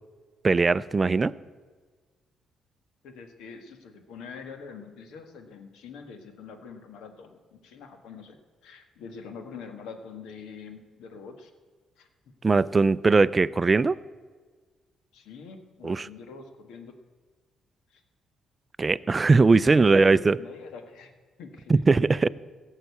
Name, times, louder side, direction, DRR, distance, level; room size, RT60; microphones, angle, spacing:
voice 1, 0.4-1.3 12.4-14.0 15.8-16.1 18.8-20.4 21.7-22.3, right 3 dB, 30° right, 17 dB, 0.4 m, -20 dB
voice 2, 3.0-8.4 8.6-11.5 12.0-12.1 15.1-16.9 17.9-18.0 19.4-21.1 21.4-21.8 22.1-22.3, left 5 dB, 85° left, 7 dB, 1.5 m, -44 dB
16.5 x 6.6 x 8.2 m, 1.5 s
cardioid pair, 90°, 0 cm